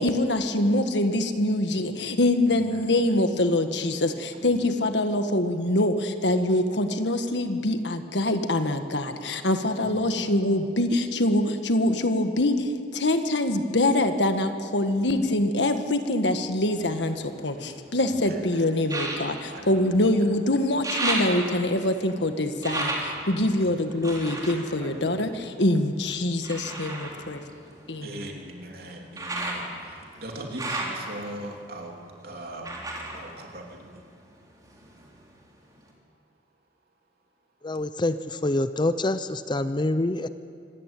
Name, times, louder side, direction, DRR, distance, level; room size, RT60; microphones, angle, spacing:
voice 1, 0.0-27.4 27.9-28.1, left 1 dB, 80° left, 7 dB, 1.6 m, -24 dB
voice 2, 2.4-2.9 4.4-4.7 9.8-10.2 18.0-18.6 19.5-20.2 23.6-23.7 24.8-25.4 28.0-32.0 32.2-32.7 33.1-34.0, right 1 dB, 60° right, 1 dB, 3.2 m, -40 dB
sound 1, 16.7-18.0 18.8-20.4 20.6-25.8 26.4-34.3 34.6-35.4 35.9-36.0, right 2 dB, 20° right, 3.8 m, -34 dB
voice 3, 37.6-40.3, left 2 dB, 25° left, 12 dB, 0.6 m, -26 dB
25.5 x 15.0 x 9.2 m, 2.3 s
head